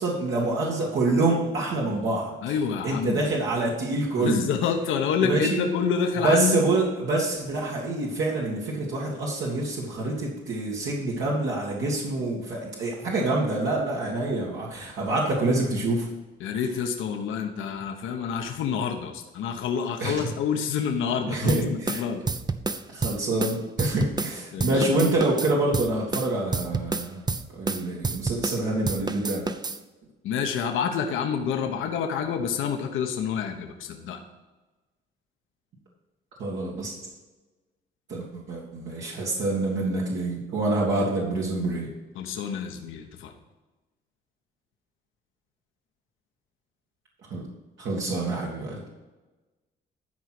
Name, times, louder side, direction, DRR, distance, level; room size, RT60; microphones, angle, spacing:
voice 1, 0.0-2.3 2.8-4.5 5.2-5.6 6.2-16.1 20.0-20.3 21.3-22.0 22.9-27.2 27.6-29.5 36.4-37.0 38.1-41.9 47.3-47.5 47.8-48.8, right 2 dB, 70° right, -4 dB, 2.2 m, -26 dB
voice 2, 2.4-3.2 4.1-6.6 16.4-22.2 24.5-24.9 30.2-34.2 42.1-43.3, left 7 dB, 85° left, 4 dB, 1.1 m, -28 dB
sound 1, 21.5-24.3 24.6-28.6 28.8-29.8, right 4 dB, 20° right, 0.6 m, -29 dB
12.5 x 4.8 x 6.0 m, 1.2 s
cardioid pair, 90°, 20 cm